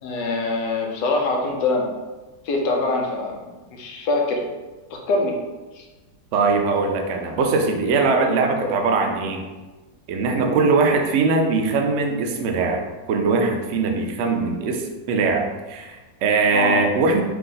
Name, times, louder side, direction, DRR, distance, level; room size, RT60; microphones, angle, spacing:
voice 1, 0.0-1.9 2.4-3.4 3.7-4.4 5.1-5.4 5.7-5.8 8.0-8.2 8.6-8.7 10.3-10.6 16.5-16.8, left 3 dB, 75° left, 1 dB, 1.4 m, -24 dB
voice 2, 6.3-9.5 10.1-12.8 13.1-17.2, right 4 dB, 90° right, 3 dB, 0.6 m, -21 dB
4.6 x 2.6 x 3.9 m, 1.2 s
omnidirectional pair, 2.0 m